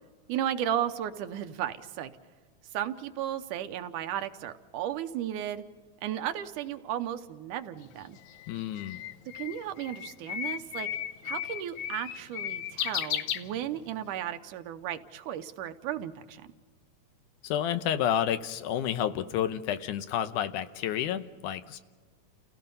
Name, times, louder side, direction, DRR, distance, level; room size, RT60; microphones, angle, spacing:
voice 1, 0.3-2.1 2.7-5.6 6.0-8.2 9.3-10.9 11.2-16.5, right 11 dB, 85° right, 9 dB, 2.4 m, -34 dB
Bird, 7.8-14.1, left 10 dB, 75° left, 2.0 m, -35 dB
voice 2, 8.5-9.0 17.4-21.8, left 10 dB, 90° left, 11 dB, 2.3 m, -30 dB
30.0 x 16.5 x 5.4 m, 1.4 s
omnidirectional pair, 3.5 m